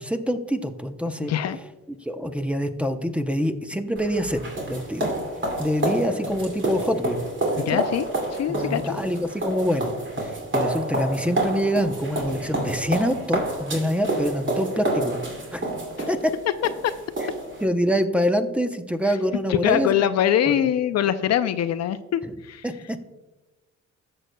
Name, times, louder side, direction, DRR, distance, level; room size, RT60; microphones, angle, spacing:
voice 1, 0.0-1.3 2.0-4.4 4.7-5.1 5.6-7.2 7.7-7.8 8.5-15.2 15.5-15.7 16.1-16.3 17.6-19.9 20.5-20.6 22.2-22.3 22.6-23.0, equal, 5° right, 8 dB, 0.7 m, -25 dB
voice 2, 1.2-1.6 7.6-8.1 8.3-9.0 16.0-16.1 16.8-16.9 19.5-22.7, left 10 dB, 60° left, 12 dB, 0.5 m, -23 dB
sound 1, 4.0-17.7, right 1 dB, 40° right, 2.4 m, -28 dB
14.5 x 6.6 x 2.2 m, 1.1 s
cardioid pair, 90°, 30 cm